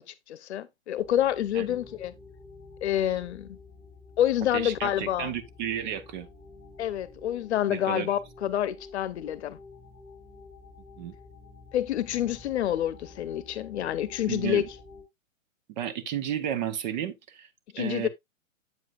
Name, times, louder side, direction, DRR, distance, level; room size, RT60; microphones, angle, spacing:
voice 1, 0.1-2.1 2.8-3.6 4.2-5.3 6.8-9.6 11.7-14.6 17.7-18.1, left 11 dB, 55° left, 0.9 m, -28 dB
sound 1, 1.0-15.0, left 3 dB, 5° right, 2.7 m, -50 dB
voice 2, 4.5-6.3 7.7-8.1 11.0-11.1 14.3-14.7 15.8-17.5 17.8-18.1, right 10 dB, 35° right, 0.8 m, -32 dB
8.0 x 7.4 x 2.5 m
hypercardioid pair, 125°, 40 cm